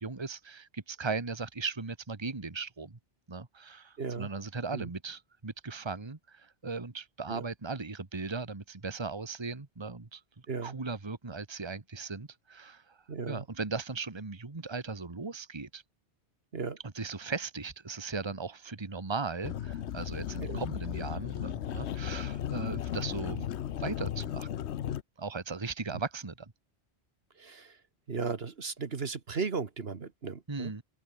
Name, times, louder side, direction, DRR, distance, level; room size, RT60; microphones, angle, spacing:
voice 1, 0.0-3.0 3.3-10.2 10.6-13.0 13.3-15.8 16.9-23.4 23.8-24.5 25.2-26.5 30.5-30.8, right 4 dB, 25° right, 1.5 m, -38 dB
voice 2, 4.0-4.3 4.7-4.9 7.3-7.4 10.5-10.8 13.1-13.4 16.5-16.8 20.4-20.6 23.3-23.4 25.9-26.0 27.4-27.8 28.1-30.7, right 5 dB, 60° right, 1.7 m, -36 dB
sound 1, 19.4-25.0, left 10 dB, 80° left, 1.0 m, -35 dB
open air
omnidirectional pair, 1.1 m